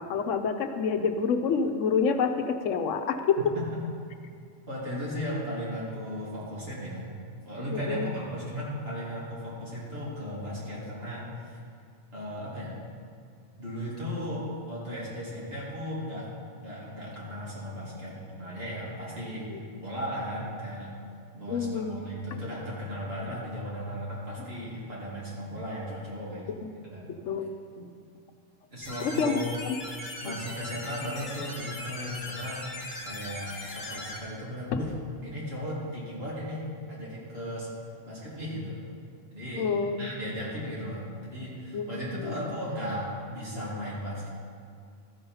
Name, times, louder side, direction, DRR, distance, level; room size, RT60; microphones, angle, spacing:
voice 1, 0.0-3.5 7.7-8.1 19.5-19.6 21.5-22.0 27.1-27.5 27.8-27.9 29.0-29.3 30.3-30.4 39.6-40.0 41.7-42.4, left 5 dB, 85° left, 7 dB, 1.0 m, -28 dB
voice 2, 4.7-7.2 7.5-11.6 12.1-12.8 13.6-21.0 21.3-27.1 28.7-29.6 30.2-32.7 33.0-34.9 35.2-37.8 38.0-38.8 39.3-44.3, equal, 55° right, -7 dB, 2.8 m, -36 dB
sound 1, 28.8-34.2, left 1 dB, 40° left, 1.6 m, -39 dB
13.5 x 5.5 x 5.5 m, 2.3 s
omnidirectional pair, 1.3 m